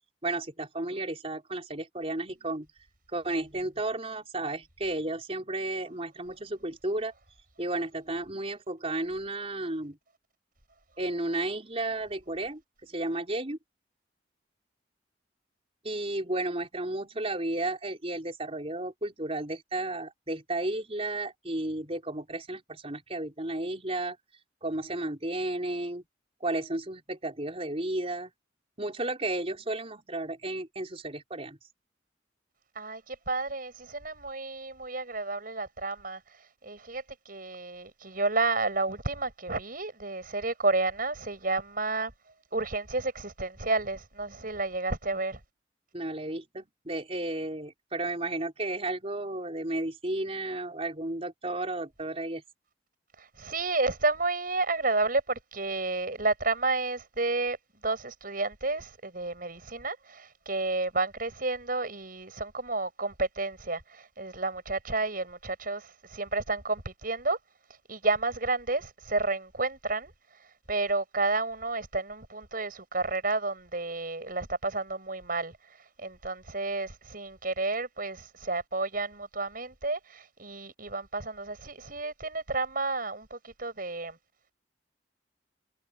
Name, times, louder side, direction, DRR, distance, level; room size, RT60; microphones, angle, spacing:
voice 1, 0.2-2.7 3.1-7.1 7.6-10.0 11.0-13.6 15.8-24.2 24.6-26.0 26.4-28.3 28.8-31.6 45.9-52.4, right 2 dB, 35° right, 4.9 m, -33 dB
voice 2, 32.7-42.1 42.5-45.4 53.2-57.6 57.8-67.4 67.9-84.2, right 3 dB, 50° right, 7.6 m, -31 dB
head